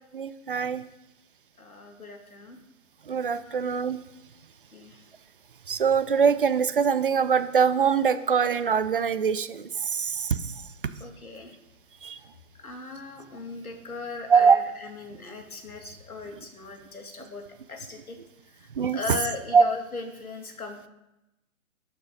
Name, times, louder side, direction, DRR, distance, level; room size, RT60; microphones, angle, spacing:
voice 1, 0.1-0.8 3.1-4.0 5.7-10.5 12.0-12.2 14.3-14.6 18.8-19.0 19.5-19.6, right 6 dB, 40° right, 13 dB, 0.5 m, -23 dB
voice 2, 1.6-2.6 3.4-3.6 4.7-5.0 11.0-11.6 12.6-17.4 17.7-18.2 18.4-20.9, left 4 dB, 90° left, 3 dB, 2.3 m, -38 dB
11.5 x 6.8 x 3.9 m, 0.94 s
figure-of-eight pair, 140°, 42 cm